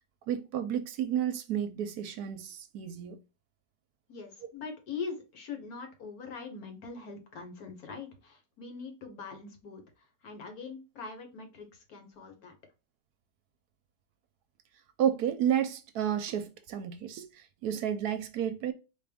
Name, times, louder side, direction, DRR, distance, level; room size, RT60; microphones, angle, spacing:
voice 1, 0.3-3.2 15.0-18.7, right 9 dB, 75° right, 1.0 m, -31 dB
voice 2, 4.1-12.5, left 5 dB, 65° left, 1.6 m, -42 dB
4.5 x 2.5 x 3.4 m
omnidirectional pair, 1.8 m